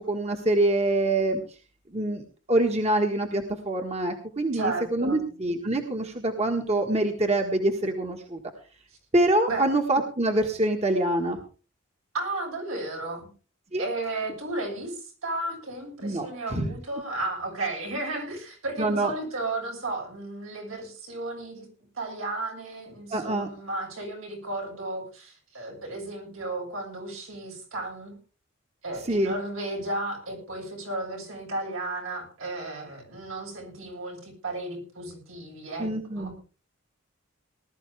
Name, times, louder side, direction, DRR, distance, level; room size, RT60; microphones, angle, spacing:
voice 1, 0.1-1.4 1.9-8.4 9.1-11.4 13.7-13.8 16.0-16.7 18.8-19.1 23.1-23.5 29.1-29.3 35.8-36.3, right 1 dB, 30° right, 3 dB, 1.6 m, -25 dB
voice 2, 4.5-5.3 9.5-9.7 12.1-13.3 13.8-21.7 22.0-28.2 28.8-36.3, right 2 dB, 85° right, 0 dB, 7.5 m, -34 dB
19.5 x 12.5 x 3.5 m, 0.37 s
head